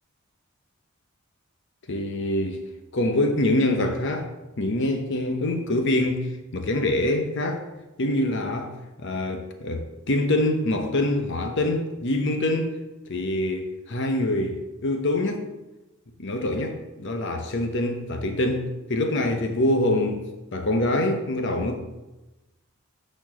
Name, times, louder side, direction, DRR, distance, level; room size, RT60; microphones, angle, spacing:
voice 1, 1.9-2.6 2.9-4.3 4.6-7.6 8.0-8.7 9.0-12.7 13.1-15.4 16.2-20.2 20.5-21.8, left 1 dB, 60° left, 0.9 m, -25 dB
9.1 x 4.4 x 6.5 m
head